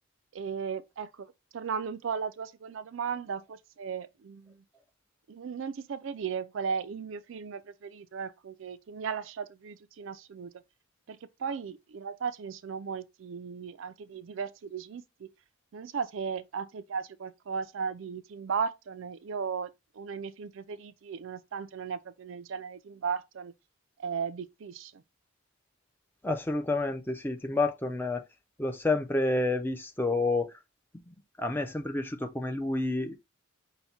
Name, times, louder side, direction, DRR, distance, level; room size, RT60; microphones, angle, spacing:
voice 1, 0.3-4.6 5.3-10.5 11.1-15.3 15.7-23.5 24.0-25.0, right 6 dB, 60° right, 0.4 m, -36 dB
voice 2, 26.2-28.2 28.6-30.5 31.1-33.1, left 2 dB, 10° left, 0.4 m, -29 dB
5.6 x 2.2 x 4.2 m
head